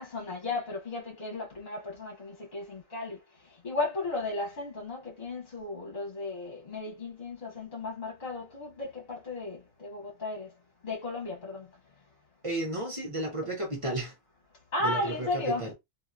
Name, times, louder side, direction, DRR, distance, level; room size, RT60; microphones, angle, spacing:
voice 1, 0.0-10.5 10.8-11.7 14.7-15.7, left 2 dB, 45° left, 1.3 m, -35 dB
voice 2, 12.4-14.1 14.8-15.7, right 1 dB, 30° right, 1.0 m, -33 dB
2.9 x 2.8 x 2.4 m
omnidirectional pair, 1.2 m